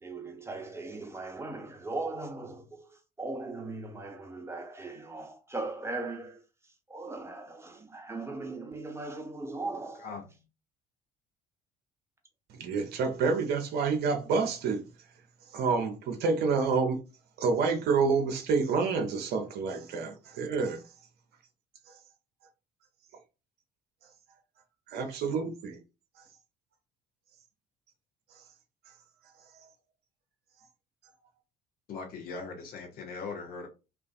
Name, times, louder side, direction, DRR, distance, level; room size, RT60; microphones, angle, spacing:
voice 1, 0.0-10.3, right 3 dB, 10° right, 0.7 m, -39 dB
voice 2, 12.6-14.8 15.5-17.0 17.4-20.8 24.9-25.8 29.6-29.7, right 5 dB, 50° right, 0.6 m, -28 dB
voice 3, 31.9-33.7, left 4 dB, 45° left, 0.7 m, -39 dB
2.4 x 2.4 x 2.3 m
figure-of-eight pair, 55°, 21 cm